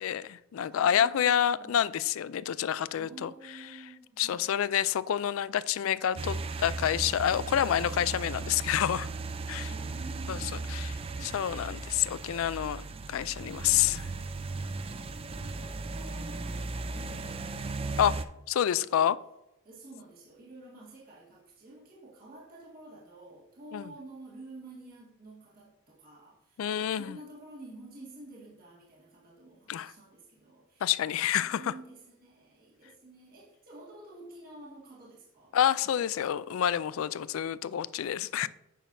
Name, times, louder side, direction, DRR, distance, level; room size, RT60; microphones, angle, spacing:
voice 1, 0.0-3.3 4.2-9.1 9.5-9.7 10.3-10.9 11.2-14.0 18.0-18.2 18.5-19.2 23.7-23.8 26.6-27.2 29.7-29.9 30.8-31.7 35.5-38.5, left 10 dB, 75° left, 0.3 m, -28 dB
voice 2, 0.7-2.0 2.9-4.5 9.6-11.5 12.8-18.2 18.6-19.2 19.6-30.9 31.4-35.6 38.1-38.5, right 2 dB, 45° right, 1.8 m, -51 dB
sound 1, 6.2-18.2, right 3 dB, 25° right, 0.4 m, -37 dB
9.1 x 6.3 x 2.6 m
head